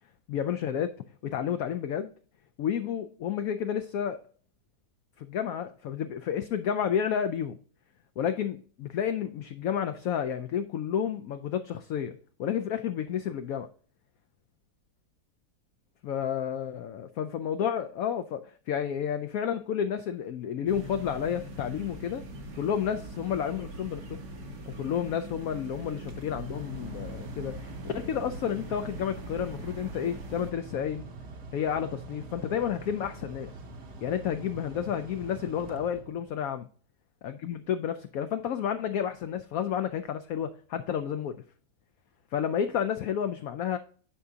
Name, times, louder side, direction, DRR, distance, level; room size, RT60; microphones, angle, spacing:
voice 1, 0.3-0.9 1.2-2.1 2.6-4.2 5.2-7.6 8.2-13.7 16.0-22.3 22.6-24.2 24.7-31.0 31.5-33.5 34.0-36.7 37.2-41.3 42.3-43.8, left 8 dB, 70° left, 0.9 m, -31 dB
sound 1, 20.7-30.5, right 1 dB, 80° right, 1.9 m, -42 dB
Mechanical fan, 26.0-36.5, right 3 dB, 45° right, 1.0 m, -45 dB
10.5 x 4.9 x 2.7 m
omnidirectional pair, 1.9 m